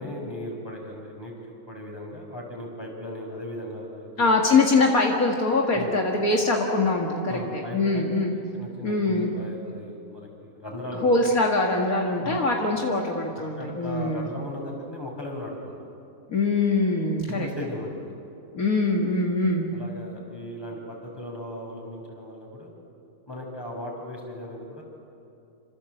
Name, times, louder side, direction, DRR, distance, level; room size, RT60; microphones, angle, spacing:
voice 1, 0.0-1.3 1.7-4.2 5.7-5.9 7.3-8.0 8.3-11.1 12.2-12.4 13.6-15.8 17.3-18.2 19.7-22.7 23.3-24.8, left 1 dB, 15° left, -1 dB, 6.2 m, -37 dB
voice 2, 4.2-8.3 8.8-9.3 11.0-14.3 16.3-17.5 18.5-19.7, left 3 dB, 65° left, 0 dB, 2.5 m, -23 dB
27.5 x 27.0 x 8.0 m, 2.5 s
omnidirectional pair, 1.6 m